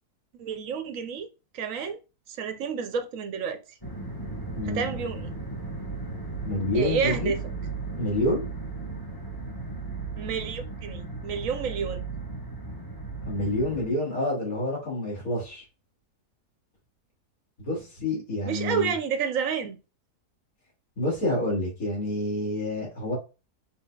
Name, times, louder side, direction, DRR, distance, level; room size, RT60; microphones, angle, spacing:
voice 1, 0.4-1.3 1.5-2.0 2.3-3.6 4.6-5.3 6.7-7.4 10.2-12.0 18.4-19.8, right 6 dB, 65° right, 1.0 m, -30 dB
sound 1, 3.8-13.9, right 3 dB, 15° left, 1.3 m, -36 dB
voice 2, 4.6-4.9 6.4-7.3 8.0-8.5 13.3-15.6 17.6-18.9 21.0-23.2, left 1 dB, 60° left, 2.8 m, -28 dB
5.8 x 3.8 x 2.3 m
omnidirectional pair, 1.7 m